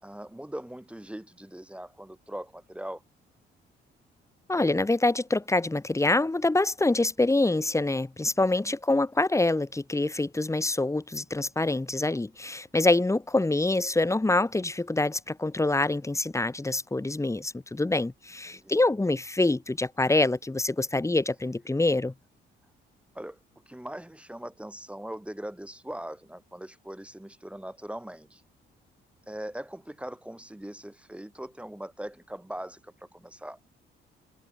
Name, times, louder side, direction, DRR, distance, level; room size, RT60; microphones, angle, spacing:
voice 1, 0.0-3.0 8.4-8.7 18.5-18.7 23.1-23.4 23.7-28.4 29.3-33.6, right 1 dB, 5° right, 3.7 m, -40 dB
voice 2, 4.5-22.1, left 2 dB, 15° left, 2.8 m, -25 dB
cardioid pair, 90°, 20 cm